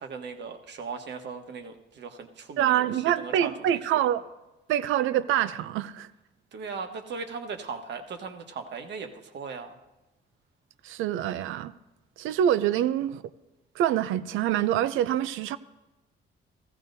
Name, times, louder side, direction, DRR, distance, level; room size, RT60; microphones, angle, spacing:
voice 1, 0.0-2.9 3.2-3.8 6.5-9.8, right 5 dB, 60° right, 1.3 m, -38 dB
voice 2, 2.6-4.3 4.7-6.1 10.8-11.7 12.2-13.2 13.8-15.6, right 11 dB, 90° right, 0.5 m, -25 dB
16.0 x 14.5 x 2.7 m
cardioid pair, 90°, 20 cm